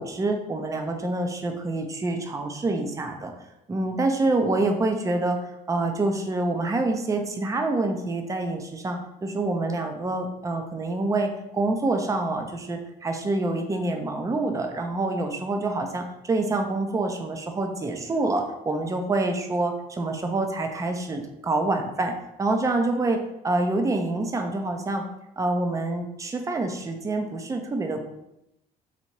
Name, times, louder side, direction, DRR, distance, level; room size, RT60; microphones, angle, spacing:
voice 1, 0.0-3.3 3.7-5.4 5.7-22.1 22.4-23.2 23.4-25.0 25.4-28.1, right 2 dB, 20° right, 4 dB, 0.6 m, -26 dB
4.1 x 2.7 x 4.5 m, 0.86 s
cardioid pair, 110°, 17 cm